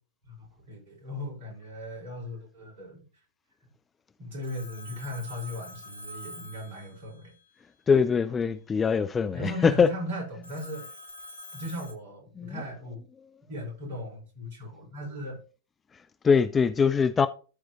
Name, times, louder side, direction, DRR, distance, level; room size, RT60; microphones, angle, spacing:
voice 1, 0.2-3.1 4.2-7.3 9.3-10.9 11.5-13.0 13.5-15.4, left 1 dB, 55° right, 5.3 m, -37 dB
Telephone, 4.4-7.5 10.4-11.9, left 2 dB, 75° left, 1.1 m, -45 dB
voice 2, 7.9-9.9 12.4-12.5 16.2-17.3, left 6 dB, 20° left, 0.5 m, -22 dB
13.5 x 4.8 x 3.1 m
figure-of-eight pair, 90°, 0 cm